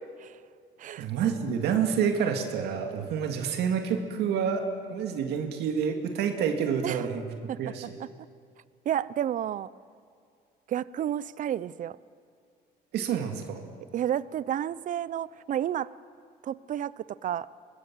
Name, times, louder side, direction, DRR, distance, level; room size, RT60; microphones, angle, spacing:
voice 1, 1.0-4.6 4.9-7.3 7.6-7.9 12.9-13.6, right 7 dB, 80° right, 4 dB, 2.2 m, -28 dB
voice 2, 6.8-7.7 8.9-9.7 10.7-12.0 13.9-15.9 16.4-17.5, right 10 dB, 50° right, 19 dB, 0.6 m, -31 dB
24.0 x 20.5 x 7.6 m, 2.3 s
cardioid pair, 110°, 17 cm